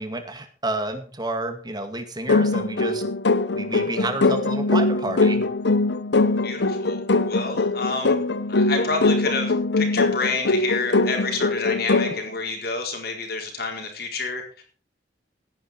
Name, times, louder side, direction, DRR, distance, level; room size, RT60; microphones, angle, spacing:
voice 1, 0.0-3.0 3.5-5.4, right 2 dB, 25° right, 7 dB, 2.2 m, -30 dB
sound 1, 2.3-12.2, left 3 dB, 75° left, 0.9 m, -22 dB
voice 2, 6.4-8.2 8.5-14.6, left 4 dB, 55° left, 2 dB, 4.5 m, -29 dB
16.5 x 11.0 x 4.5 m, 0.40 s
head